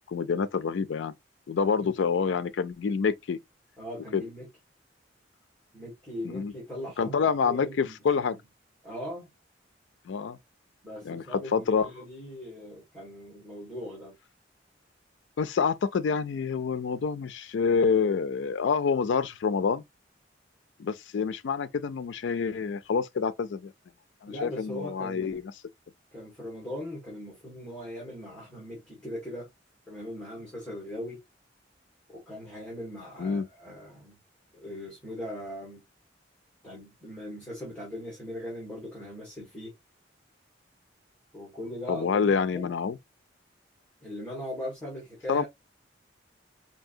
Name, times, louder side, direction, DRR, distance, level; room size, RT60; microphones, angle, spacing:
voice 1, 0.1-1.1 1.5-3.4 4.1-4.2 6.2-6.5 7.0-8.4 10.1-10.4 11.0-11.9 15.4-19.8 20.8-23.7 24.2-25.4 33.2-33.5 41.9-43.0 45.3-45.4, left 5 dB, 75° left, 0.4 m, -27 dB
voice 2, 1.5-1.9 3.8-4.5 5.7-8.4 8.8-9.3 10.8-14.2 24.3-25.4 26.1-29.5 29.9-31.2 32.1-34.2 34.5-35.8 36.6-39.7 41.3-42.2 42.5-42.7 44.0-45.5, left 1 dB, 5° left, 1.6 m, -40 dB
4.5 x 2.7 x 2.5 m
head